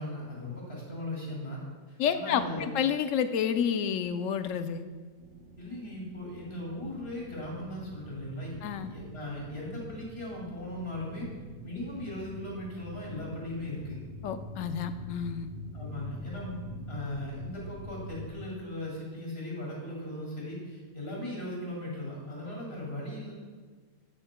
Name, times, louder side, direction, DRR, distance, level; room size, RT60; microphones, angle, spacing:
voice 1, 0.0-1.6 1.9-2.7 5.6-8.6 8.9-11.3 11.6-14.0 15.7-16.6 16.9-23.3, left 1 dB, 45° left, -3 dB, 2.5 m, -38 dB
voice 2, 2.0-4.8 8.6-8.9 14.2-15.5, left 8 dB, 70° left, 9 dB, 0.9 m, -29 dB
sound 1, 5.2-18.3, equal, 65° right, 1.2 m, -45 dB
12.0 x 9.1 x 2.2 m, 1.4 s
omnidirectional pair, 1.5 m